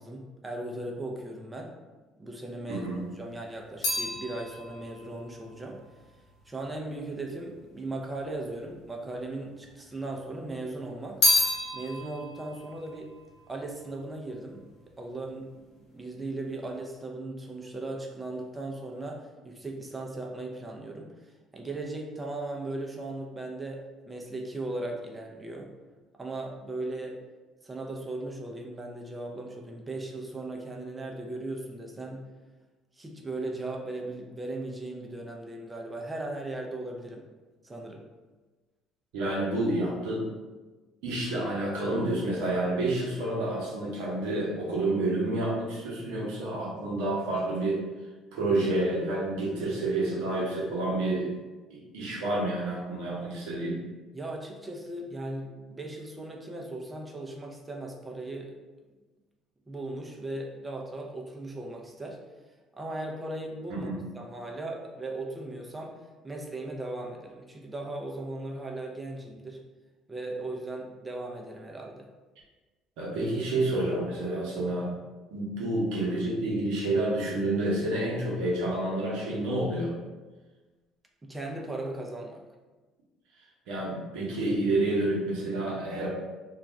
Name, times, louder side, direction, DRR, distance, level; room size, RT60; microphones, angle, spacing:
voice 1, 0.0-1.7 2.2-2.9 3.2-5.8 6.5-11.2 11.7-13.1 13.5-14.7 15.0-15.5 15.9-21.1 21.5-25.7 26.2-27.2 27.6-32.3 33.0-37.3 37.6-38.0 54.1-58.6 59.7-62.2 62.7-66.0 66.2-69.6 70.1-72.1 81.2-82.4, right 2 dB, 20° right, 1 dB, 0.6 m, -37 dB
voice 2, 2.7-3.0 39.1-40.3 41.0-47.8 48.3-51.3 51.7-53.8 63.7-64.0 73.0-74.9 75.3-79.9 83.7-86.1, right 2 dB, 75° right, -4 dB, 0.9 m, -29 dB
sound 1, 2.9-7.3 8.1-8.9 9.2-10.3 10.6-14.2 14.4-15.0, left 2 dB, 70° left, 0.9 m, -31 dB
2.4 x 2.3 x 3.2 m, 1.2 s
hypercardioid pair, 65°, 0 cm